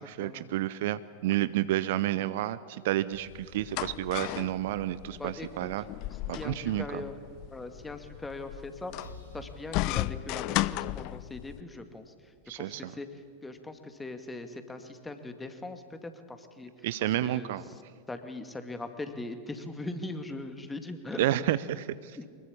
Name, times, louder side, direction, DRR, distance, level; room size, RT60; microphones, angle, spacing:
voice 1, 0.0-5.8 6.3-7.0 12.5-12.9 16.8-17.6 21.2-22.1, right 14 dB, 55° right, 16 dB, 0.6 m, -30 dB
sound 1, 3.1-11.6, left 17 dB, 40° left, 0.6 m, -35 dB
voice 2, 5.2-5.9 6.3-7.1 7.5-8.9 9.3-12.1 12.6-13.1 13.4-16.7 17.0-17.6 18.1-21.2 22.2-22.3, left 2 dB, 10° left, 8 dB, 2.2 m, -40 dB
sound 2, 9.0-12.7, equal, 80° right, 4.4 m, -52 dB
24.0 x 21.5 x 8.6 m, 2.1 s
figure-of-eight pair, 90°, 0 cm